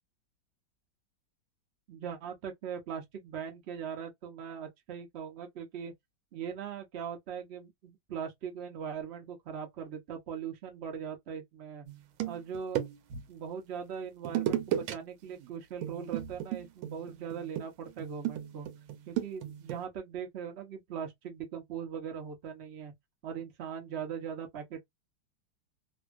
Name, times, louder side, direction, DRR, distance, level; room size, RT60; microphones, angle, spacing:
voice 1, 1.9-5.9 6.3-11.9 12.2-12.8 13.3-18.7 19.1-22.9 23.2-24.8, right 7 dB, 50° right, 0.8 m, -40 dB
sound 1, 11.9-13.2 14.2-14.9 15.2-15.5 15.8-19.8, right 11 dB, 90° right, 1.5 m, -35 dB
3.1 x 2.6 x 2.3 m
omnidirectional pair, 2.2 m